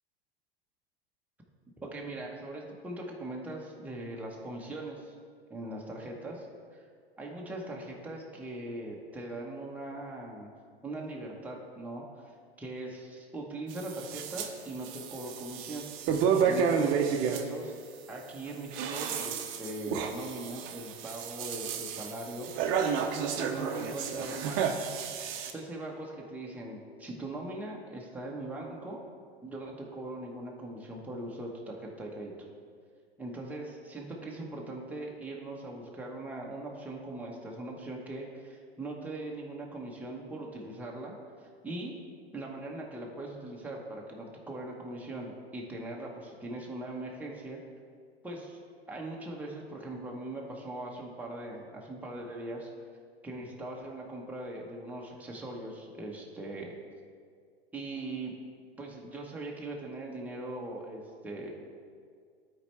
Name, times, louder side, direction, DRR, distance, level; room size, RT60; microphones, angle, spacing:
voice 1, 1.8-5.2 5.5-6.5 6.7-6.8 7.2-10.5 10.8-12.3 12.6-17.8 18.1-22.5 23.4-24.7 25.5-29.0 29.4-32.3 33.2-41.1 41.6-42.0 42.3-47.6 48.2-48.6 48.9-52.7 53.2-56.7 57.7-58.4 58.8-61.5, right 2 dB, 5° right, -2 dB, 1.1 m, -40 dB
sound 1, 13.7-14.5 14.8-17.4 18.5-25.5, right 7 dB, 40° right, 0.7 m, -31 dB
12.5 x 4.4 x 3.3 m, 2.1 s
hypercardioid pair, 100°, 31 cm